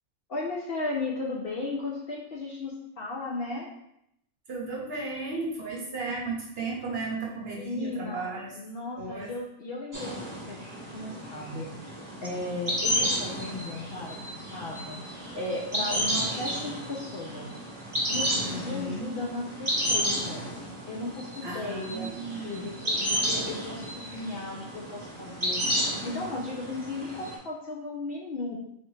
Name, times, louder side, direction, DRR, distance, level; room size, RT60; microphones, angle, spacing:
voice 1, 0.3-3.7 7.6-11.7 12.2-15.0 15.3-17.5 18.1-20.4 20.9-22.1 22.4-25.6 26.0-28.6, left 2 dB, 60° left, -3 dB, 0.7 m, -35 dB
voice 2, 4.5-8.6 8.9-9.3 18.3-19.1 21.4-22.6, right 3 dB, 60° right, -2 dB, 0.8 m, -35 dB
sound 1, 9.9-27.4, equal, 20° right, 1.0 m, -32 dB
4.1 x 2.6 x 3.0 m, 0.77 s
omnidirectional pair, 1.4 m